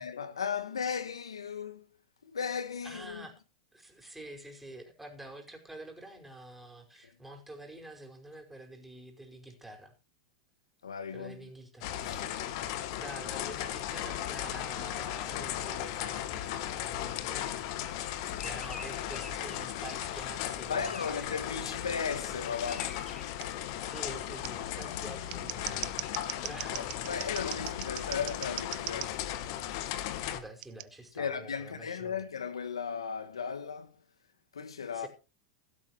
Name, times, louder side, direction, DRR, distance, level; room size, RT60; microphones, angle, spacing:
voice 1, 0.0-1.9 2.2-3.3 10.8-11.5 12.0-12.3 20.7-23.0 24.8-24.9 26.7-29.4 31.2-34.0 34.5-35.1, left 6 dB, 85° left, 1.8 m, -36 dB
voice 2, 2.8-3.3 3.7-9.9 11.1-11.9 13.0-18.1 18.4-21.8 23.6-26.1 26.4-27.8 30.2-32.3 34.9-35.1, right 2 dB, 5° right, 5.1 m, -48 dB
sound 1, 11.8-30.4, left 12 dB, 55° left, 1.9 m, -36 dB
sound 2, 18.2-23.3, left 2 dB, 15° left, 4.4 m, -49 dB
Scissors, 23.4-23.5 24.4-24.5 25.1-29.1 30.6-30.9, right 22 dB, 50° right, 0.7 m, -39 dB
16.5 x 12.5 x 3.1 m
hypercardioid pair, 100°, 3 cm